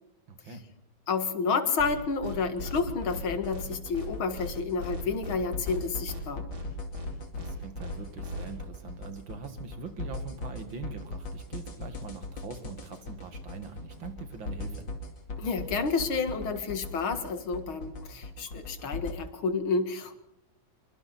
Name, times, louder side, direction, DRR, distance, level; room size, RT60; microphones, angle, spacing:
voice 1, 0.3-0.6 7.3-14.9, right 5 dB, 70° right, 8 dB, 2.8 m, -42 dB
voice 2, 1.1-6.4 15.4-20.2, left 4 dB, 85° left, 9 dB, 2.7 m, -30 dB
sound 1, 1.8-1.9 2.2-2.4 2.6-2.8 3.1-3.2 3.5-3.7 3.9-4.1 4.4-4.5 4.8-5.4 5.6-5.8 6.1-6.2 6.5-6.7 6.9-7.1 7.4-7.5 7.8-7.9 8.2-8.4, left 2 dB, 50° right, 5.7 m, -38 dB
sound 2, 2.6-19.1, left 2 dB, 65° left, 3.1 m, -40 dB
27.0 x 23.5 x 4.3 m, 0.78 s
omnidirectional pair, 2.2 m